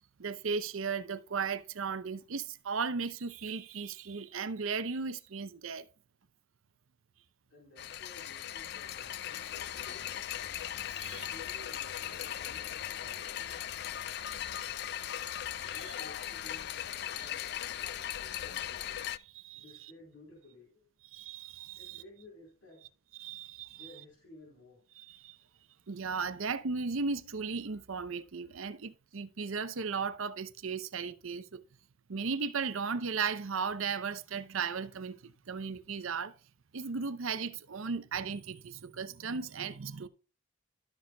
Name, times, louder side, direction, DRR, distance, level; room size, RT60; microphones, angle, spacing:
voice 1, 0.2-5.9 11.0-11.3 15.6-15.8 17.2-17.3 19.3-19.9 21.1-22.0 23.2-23.9 25.0-25.4 25.9-31.6 32.1-36.3 36.7-40.1, right 5 dB, 80° right, 0.7 m, -36 dB
voice 2, 7.5-10.2 11.0-13.7 15.6-18.9 19.5-20.9 21.7-22.8 23.7-24.8, left 1 dB, 70° left, 3.8 m, -56 dB
sound 1, 7.8-19.2, left 11 dB, 50° left, 0.3 m, -38 dB
13.0 x 6.7 x 2.3 m
head